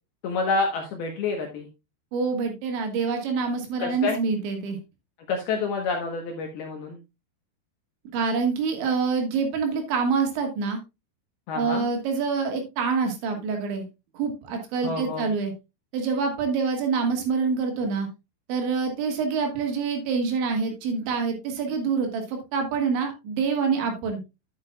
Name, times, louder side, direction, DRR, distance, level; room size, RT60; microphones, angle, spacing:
voice 1, 0.2-1.7 3.8-4.2 5.3-7.0 11.5-11.9 14.8-15.3, left 4 dB, 70° left, 2 dB, 2.5 m, -28 dB
voice 2, 2.1-4.8 8.1-10.8 11.6-13.9 14.1-15.5 15.9-18.1 18.5-24.2, right 5 dB, 70° right, 4 dB, 3.9 m, -26 dB
10.5 x 8.8 x 2.3 m, 0.24 s
omnidirectional pair, 5.8 m